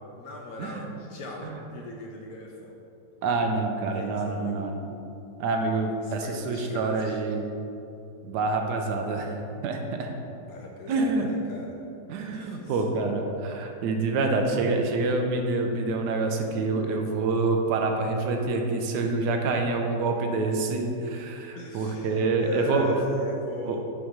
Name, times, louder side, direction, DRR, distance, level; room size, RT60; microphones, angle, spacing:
voice 1, 0.1-2.7 3.9-4.7 6.0-7.2 10.5-11.8 12.3-12.8 19.4-19.5 19.8-19.9 21.5-23.8, left 1 dB, 70° left, 0 dB, 0.9 m, -38 dB
voice 2, 3.2-4.9 5.4-7.4 8.2-9.3 9.6-10.1 10.9-11.3 12.1-23.0 23.7-23.8, right 3 dB, 75° right, 3 dB, 1.1 m, -27 dB
6.8 x 3.1 x 5.0 m, 2.7 s
omnidirectional pair, 1.9 m